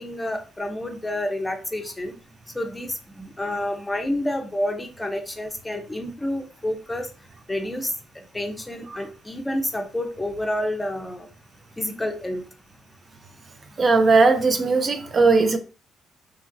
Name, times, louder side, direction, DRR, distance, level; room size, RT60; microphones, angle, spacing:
voice 1, 0.0-2.1 2.5-7.1 7.5-7.9 8.3-11.3 11.8-12.4, left 1 dB, 15° left, 0.5 m, -29 dB
voice 2, 13.8-15.6, right 3 dB, 40° right, 0.4 m, -18 dB
3.0 x 2.4 x 2.5 m
cardioid pair, 90°, 0 cm